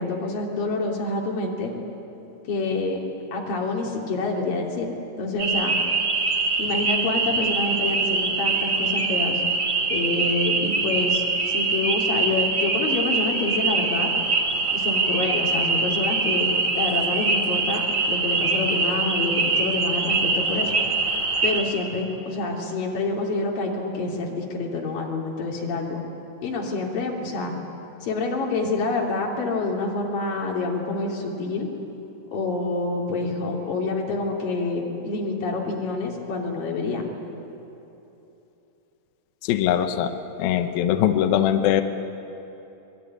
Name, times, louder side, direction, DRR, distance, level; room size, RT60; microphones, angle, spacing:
voice 1, 0.0-1.7 2.5-3.0 3.3-4.9 5.2-5.7 6.6-9.4 9.9-14.1 14.7-16.5 16.8-20.7 21.4-26.0 26.4-27.5 28.0-31.7 32.3-37.1, left 3 dB, 50° left, -1 dB, 4.3 m, -27 dB
sound 1, 5.4-21.6, right 4 dB, 80° right, 0.9 m, -24 dB
voice 2, 39.4-41.8, left 10 dB, 85° left, 7 dB, 2.1 m, -22 dB
24.5 x 21.5 x 9.7 m, 3.0 s
omnidirectional pair, 5.6 m